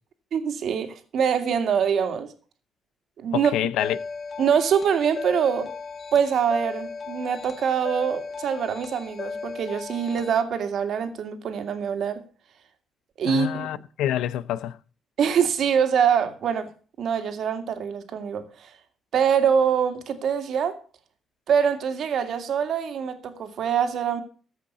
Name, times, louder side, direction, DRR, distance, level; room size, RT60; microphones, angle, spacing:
voice 1, 0.3-2.3 3.2-3.5 4.4-5.7 6.1-12.2 13.2-13.7 15.2-16.7 17.0-18.7 19.1-20.7 21.5-24.2, right 7 dB, 65° right, 2.1 m, -24 dB
voice 2, 3.3-4.0 13.2-14.8, left 11 dB, 85° left, 0.7 m, -27 dB
sound 1, 3.8-10.4, left 4 dB, 40° left, 1.7 m, -36 dB
14.5 x 5.8 x 8.2 m
cardioid pair, 90°, 0 cm